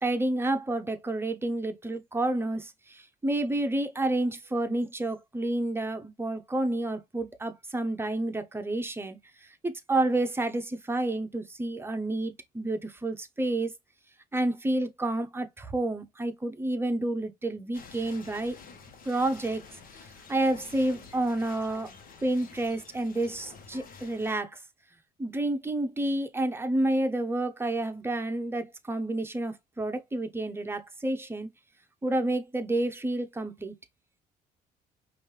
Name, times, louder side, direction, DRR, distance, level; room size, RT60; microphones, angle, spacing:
voice 1, 0.0-9.2 9.6-13.7 14.3-18.6 19.0-19.6 20.3-21.9 22.2-24.6 25.2-31.5 32.0-33.7, right 2 dB, 15° right, 0.9 m, -29 dB
sound 1, 17.7-24.3, left 5 dB, 55° left, 1.3 m, -49 dB
5.2 x 2.6 x 3.3 m
cardioid pair, 110°, 17 cm